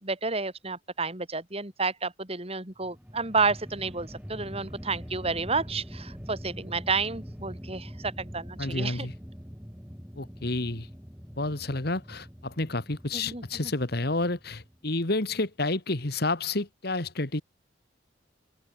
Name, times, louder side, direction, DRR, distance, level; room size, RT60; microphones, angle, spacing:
voice 1, 0.0-9.1 13.1-13.4, right 4 dB, 30° right, 3.9 m, -30 dB
sound 1, 2.7-15.1, equal, 5° right, 7.1 m, -44 dB
voice 2, 8.6-9.1 10.2-10.9 11.4-17.4, left 2 dB, 55° left, 2.0 m, -30 dB
head